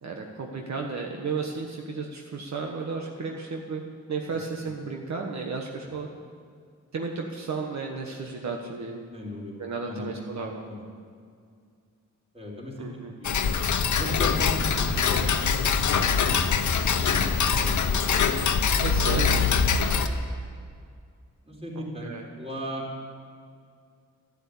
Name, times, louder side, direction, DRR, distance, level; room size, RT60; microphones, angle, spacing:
voice 1, 0.0-3.8 4.1-6.1 6.9-9.0 9.6-10.6 12.8-13.1 17.6-17.8 18.8-19.4 22.0-22.2, right 4 dB, 65° right, 1 dB, 1.4 m, -33 dB
voice 2, 9.1-9.6 9.9-10.3 10.6-10.8 12.3-13.3 14.0-16.0 17.0-18.4 18.8-19.6 19.9-20.4 21.4-22.9, equal, 20° right, -2 dB, 4.1 m, -37 dB
Tick-tock, 13.2-20.1, left 6 dB, 70° left, 1.0 m, -23 dB
12.5 x 12.0 x 8.6 m, 2.2 s
wide cardioid pair, 110°, 31 cm